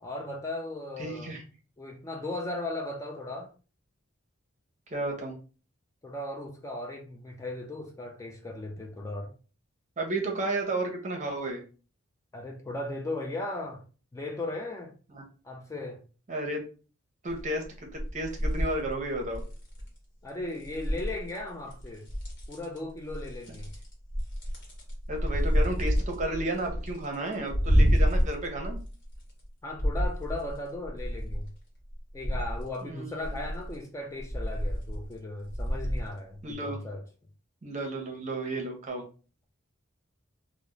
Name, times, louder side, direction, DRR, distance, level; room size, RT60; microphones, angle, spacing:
voice 1, 0.0-1.4 1.8-3.5 6.0-9.3 12.3-13.8 14.1-14.9 15.4-16.0 20.2-22.1 22.5-23.7 27.6-27.9 29.6-31.5 32.1-37.0, left 2 dB, 15° left, 0.3 m, -37 dB
voice 2, 1.0-1.4 4.9-5.4 10.0-11.6 15.1-15.2 16.3-16.6 17.2-17.6 17.9-19.4 25.1-28.8 32.8-33.5 36.4-36.8 37.6-39.0, right 2 dB, 40° right, 0.7 m, -33 dB
sound 1, 17.3-17.7 17.9-19.9 20.6-21.4 21.7-22.8 23.1-29.4 29.8-31.5 31.9-32.7 33.2-33.8 34.2-35.2 35.5-36.1 36.5-36.6, equal, 60° left, 1.0 m, -29 dB
2.4 x 2.0 x 3.0 m
head